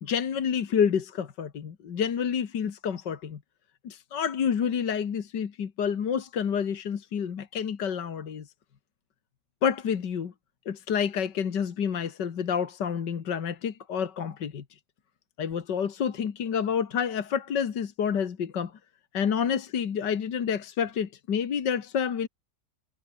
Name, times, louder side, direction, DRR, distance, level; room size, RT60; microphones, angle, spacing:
voice 1, 0.0-3.4 3.8-8.5 9.6-10.3 10.7-14.6 15.4-18.7 19.1-22.3, left 7 dB, 70° left, 2.2 m, -28 dB
omnidirectional pair, 1.9 m